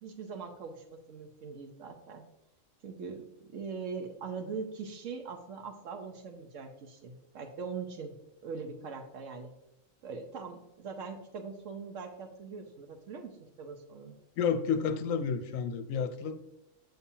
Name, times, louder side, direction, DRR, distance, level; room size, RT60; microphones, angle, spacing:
voice 1, 0.0-2.2 2.8-8.2 8.4-9.5 10.0-14.1, right 5 dB, 70° right, 5 dB, 1.1 m, -42 dB
voice 2, 14.4-16.4, left 6 dB, 80° left, 10 dB, 1.0 m, -30 dB
7.0 x 5.9 x 2.8 m, 0.88 s
omnidirectional pair, 1.4 m